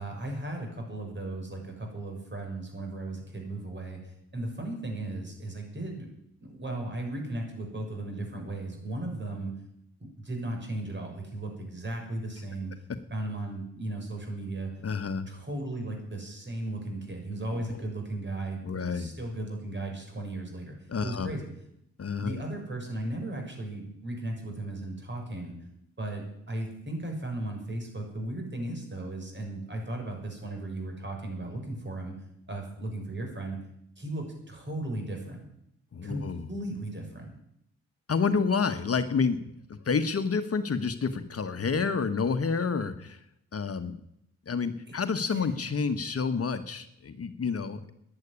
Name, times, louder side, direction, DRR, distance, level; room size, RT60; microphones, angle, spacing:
voice 1, 0.0-6.1 6.4-9.5 10.2-12.7 13.1-14.7 15.3-20.7 21.0-21.5 22.2-25.6 26.0-32.1 32.5-33.6 34.0-35.4 36.0-37.3 44.9-45.0 45.3-45.5, right 2 dB, 40° right, 2 dB, 6.4 m, -36 dB
voice 2, 14.8-15.3 17.5-17.6 18.6-19.1 20.9-21.3 22.0-22.3 35.9-36.4 38.1-39.4 39.7-43.2 43.5-44.0 44.5-47.9, left 5 dB, 50° left, 9 dB, 1.2 m, -29 dB
11.5 x 9.9 x 9.9 m, 0.77 s
cardioid pair, 55°, 30 cm